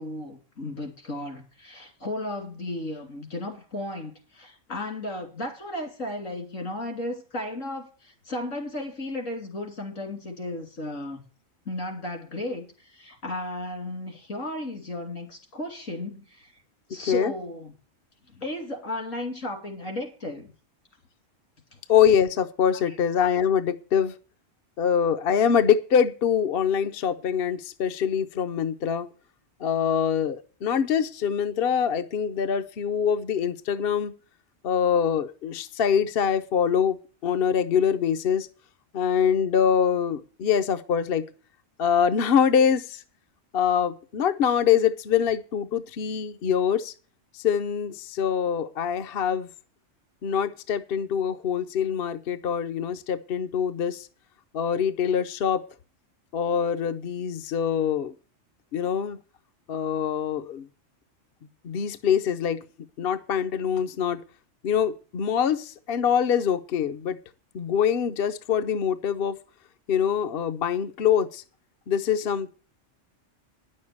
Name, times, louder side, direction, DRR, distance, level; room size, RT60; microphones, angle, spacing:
voice 1, 0.0-11.2 11.6-16.5 16.9-17.7 18.3-20.5 21.7-21.8, left 1 dB, 80° left, 3.3 m, -34 dB
voice 2, 21.9-24.1 24.8-29.1 29.6-34.1 34.6-38.5 38.9-41.3 41.8-43.0 43.5-46.9 47.3-49.5 50.2-54.1 54.5-55.6 56.3-58.1 58.7-59.2 59.7-60.7 61.6-62.6 63.0-64.2 64.6-67.2 67.5-69.4 69.9-71.4 71.9-72.5, left 8 dB, 55° left, 0.8 m, -24 dB
10.0 x 6.5 x 8.5 m
omnidirectional pair, 1.3 m